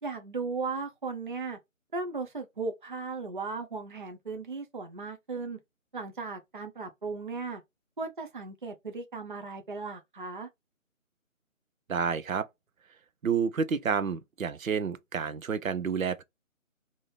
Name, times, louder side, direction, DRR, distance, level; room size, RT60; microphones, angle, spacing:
voice 1, 0.0-1.6 1.9-5.6 5.9-7.6 8.0-10.5, right 4 dB, 40° right, 0.5 m, -36 dB
voice 2, 11.9-12.5 13.2-16.2, right 6 dB, 75° right, 0.7 m, -29 dB
3.7 x 2.7 x 3.1 m
figure-of-eight pair, 160°, 41 cm